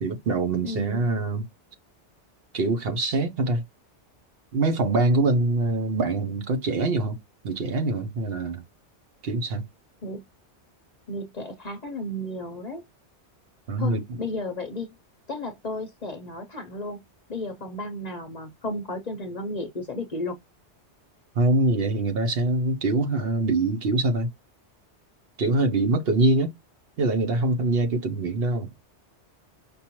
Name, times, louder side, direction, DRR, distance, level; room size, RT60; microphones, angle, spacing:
voice 1, 0.0-1.5 2.5-3.6 4.5-7.2 7.4-8.6 9.2-9.7 13.7-14.2 21.4-24.3 25.4-26.6 27.0-28.7, right 2 dB, 60° right, 1.0 m, -24 dB
voice 2, 0.6-1.1 10.0-10.2 11.1-12.8 13.8-14.9 15.3-17.0 17.3-20.4, left 2 dB, 45° left, 0.7 m, -33 dB
5.3 x 2.5 x 2.9 m
omnidirectional pair, 1.2 m